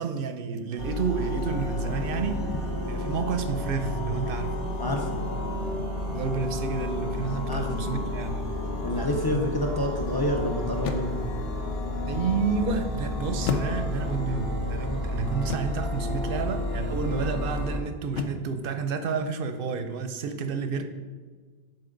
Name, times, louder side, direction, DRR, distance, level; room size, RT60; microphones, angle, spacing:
voice 1, 0.0-2.5 2.9-4.6 6.1-8.6 12.1-20.9, right 5 dB, 60° right, 9 dB, 0.6 m, -30 dB
sound 1, 0.8-17.8, left 1 dB, 55° left, 1.3 m, -31 dB
voice 2, 4.8-5.2 7.5-7.7 8.8-11.2, left 1 dB, 30° left, 1 dB, 0.4 m, -28 dB
sound 2, 10.8-11.4 13.5-14.2 15.5-15.9 18.1-18.6, left 4 dB, 70° left, 0.9 m, -32 dB
10.5 x 4.0 x 3.8 m, 1.5 s
omnidirectional pair, 1.3 m